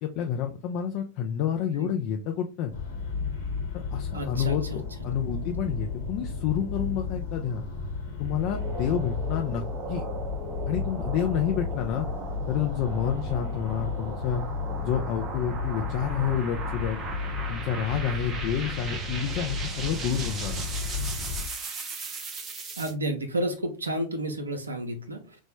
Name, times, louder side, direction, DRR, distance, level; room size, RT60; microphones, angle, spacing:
voice 1, 0.0-2.7 3.7-7.6 8.2-9.6 9.9-10.0 10.7-12.1 12.5-14.4 14.8-17.0 17.5-20.7, left 9 dB, 45° left, 4 dB, 0.3 m, -29 dB
sound 1, 2.7-21.4, left 4 dB, 60° left, 1.0 m, -33 dB
voice 2, 4.1-4.8 22.8-25.4, right 1 dB, 80° right, 5 dB, 0.4 m, -31 dB
sound 2, 8.3-22.9, right 4 dB, 25° right, 0.5 m, -38 dB
3.2 x 2.0 x 2.9 m, 0.32 s
figure-of-eight pair, 90°, 0 cm